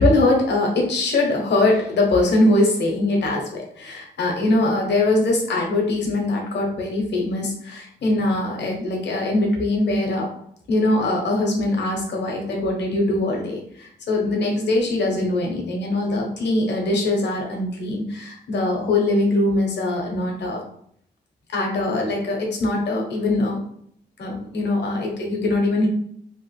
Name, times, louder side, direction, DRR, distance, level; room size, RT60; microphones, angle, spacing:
voice 1, 0.0-10.3 10.7-20.6 21.5-23.6 24.2-25.9, left 2 dB, 75° left, 0 dB, 0.9 m, -22 dB
3.1 x 2.1 x 3.2 m, 0.66 s
cardioid pair, 90°, 18 cm